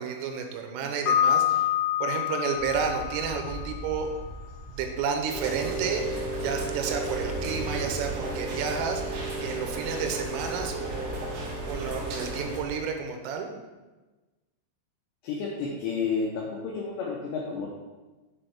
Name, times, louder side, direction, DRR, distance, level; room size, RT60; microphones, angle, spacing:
voice 1, 0.0-1.7 2.0-4.1 4.7-11.3 11.6-13.5, right 6 dB, 90° right, 4 dB, 3.2 m, -31 dB
Piano, 1.1-4.0, left 10 dB, 70° left, 2.7 m, -26 dB
sound 1, 2.5-12.7, equal, 45° right, 2.5 m, -41 dB
Rain, 5.3-12.6, right 2 dB, 70° right, 2.8 m, -33 dB
voice 2, 15.2-17.8, left 5 dB, 90° left, -2 dB, 2.5 m, -31 dB
7.6 x 4.2 x 3.4 m, 1.2 s
omnidirectional pair, 5.8 m